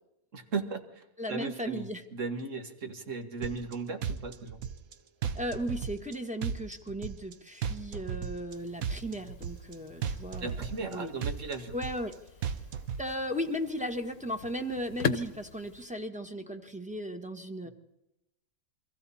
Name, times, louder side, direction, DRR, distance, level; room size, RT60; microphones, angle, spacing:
voice 1, 0.3-1.0 1.3-4.6 10.4-11.7 17.6-17.7, right 4 dB, 60° right, 6 dB, 2.1 m, -36 dB
voice 2, 1.2-2.0 5.3-10.6 10.9-11.1 11.7-12.1 13.0-17.7, equal, 5° right, 3 dB, 1.4 m, -36 dB
sound 1, 3.4-3.7 4.0-4.9 5.2-6.1 6.4-7.3 7.6-8.5 8.8-9.7 10.0-10.9 11.2-12.1 12.4-13.0, right 7 dB, 80° right, 1.4 m, -35 dB
sound 2, 8.5-15.9, left 8 dB, 65° left, 1.2 m, -41 dB
29.0 x 24.0 x 4.3 m, 0.90 s
omnidirectional pair, 1.5 m